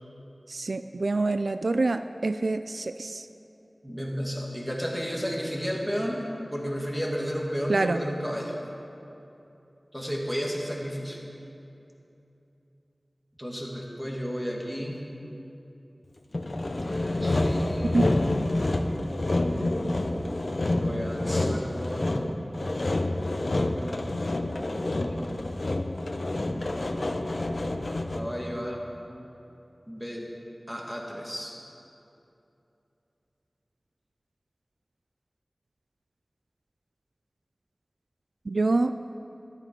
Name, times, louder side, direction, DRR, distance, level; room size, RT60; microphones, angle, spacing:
voice 1, 0.5-3.3 7.7-8.0 17.9-18.1 38.5-39.0, right 3 dB, 85° right, 10 dB, 0.3 m, -26 dB
voice 2, 3.8-6.2 6.5-8.6 9.9-11.2 13.4-15.0 16.8-18.0 20.7-22.3 24.8-25.2 28.1-28.8 29.9-30.3 30.7-31.6, equal, 5° right, -2 dB, 2.2 m, -33 dB
Sawing, 16.3-28.4, left 2 dB, 60° left, 0.8 m, -28 dB
13.0 x 11.5 x 5.3 m, 2.8 s
wide cardioid pair, 60°, 0 cm